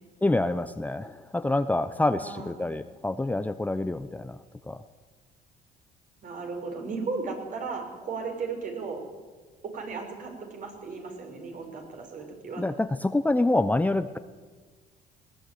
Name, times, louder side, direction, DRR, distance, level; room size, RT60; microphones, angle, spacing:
voice 1, 0.2-4.4 4.7-4.8 12.6-14.2, left 2 dB, 10° left, 11 dB, 0.8 m, -26 dB
voice 2, 2.2-2.7 6.2-9.0 9.7-12.6, right 4 dB, 50° right, 3 dB, 6.1 m, -35 dB
20.5 x 18.0 x 9.4 m, 1.4 s
cardioid pair, 110°, 17 cm